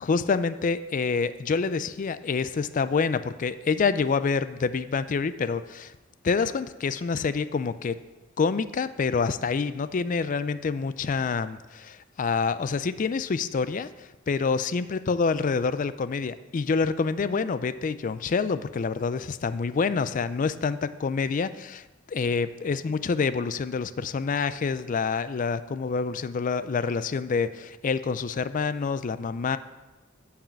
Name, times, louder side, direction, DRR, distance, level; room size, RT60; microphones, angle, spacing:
voice 1, 0.0-5.9 6.2-8.0 8.4-13.9 14.3-29.6, left 5 dB, 40° left, 14 dB, 0.4 m, -27 dB
8.9 x 4.8 x 7.6 m, 1.1 s
head